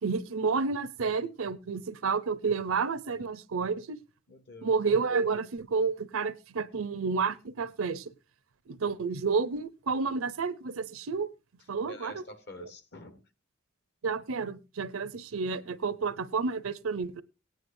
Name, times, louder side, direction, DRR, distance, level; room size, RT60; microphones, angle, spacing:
voice 1, 0.0-4.0 4.6-8.1 8.7-11.3 11.7-12.2 14.0-17.2, right 5 dB, 80° right, 0.7 m, -30 dB
voice 2, 4.3-4.8 11.8-13.2, left 2 dB, 55° left, 1.4 m, -47 dB
18.0 x 9.3 x 2.6 m
head